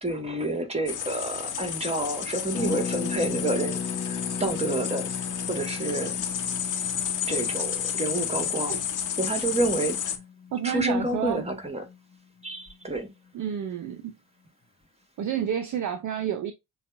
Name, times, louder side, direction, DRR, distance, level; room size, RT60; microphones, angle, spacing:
voice 1, 0.0-3.8 4.1-5.1 5.5-6.2 7.3-8.8 9.2-10.0 10.6-11.8 12.4-13.1, right 2 dB, 15° right, 1.7 m, -29 dB
sound 1, 0.9-10.2, left 9 dB, 40° left, 1.0 m, -31 dB
Harp, 2.5-12.2 12.4-12.5 12.7-13.0, left 6 dB, 20° left, 0.7 m, -37 dB
voice 2, 10.5-11.5 13.3-14.1 15.2-16.5, right 9 dB, 45° right, 0.7 m, -29 dB
7.0 x 2.4 x 2.5 m
hypercardioid pair, 45°, 45 cm